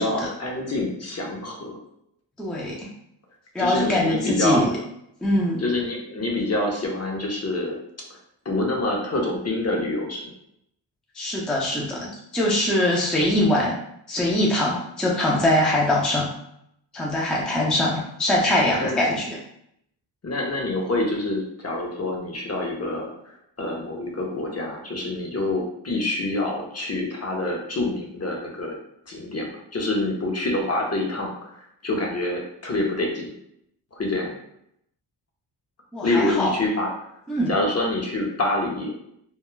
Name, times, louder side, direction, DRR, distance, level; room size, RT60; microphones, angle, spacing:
voice 1, 0.0-1.8 3.6-4.6 5.6-7.8 8.4-10.2 18.8-19.0 20.2-23.1 23.6-28.8 29.1-33.3 33.9-34.4 36.0-36.9 37.5-38.9, left 2 dB, 35° left, -1 dB, 0.7 m, -26 dB
voice 2, 2.4-2.9 3.5-4.8 5.2-5.6 11.2-12.1 12.3-13.7 14.1-16.3 16.9-19.4 35.9-36.5 37.3-37.5, left 1 dB, ahead, -4 dB, 0.5 m, -22 dB
2.3 x 2.0 x 3.1 m, 0.75 s
cardioid pair, 75°, 45 cm